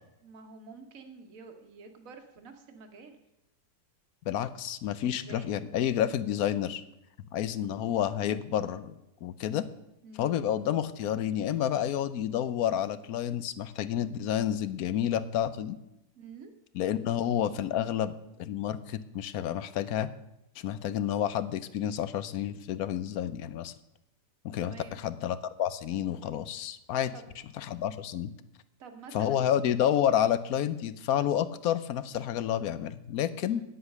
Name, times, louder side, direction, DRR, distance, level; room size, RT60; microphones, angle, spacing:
voice 1, 0.2-3.2 5.1-5.6 7.4-7.7 10.0-10.3 16.1-16.5 24.6-25.0 27.1-27.3 28.8-29.4 33.5-33.6, right 5 dB, 55° right, 6 dB, 1.6 m, -48 dB
voice 2, 4.3-6.8 7.3-8.9 9.2-9.7 10.2-15.8 16.7-18.1 18.4-20.1 20.6-23.7 24.4-27.1 27.6-28.3 29.1-33.6, left 10 dB, 70° left, 14 dB, 1.0 m, -29 dB
9.8 x 8.0 x 6.6 m, 0.88 s
omnidirectional pair, 1.8 m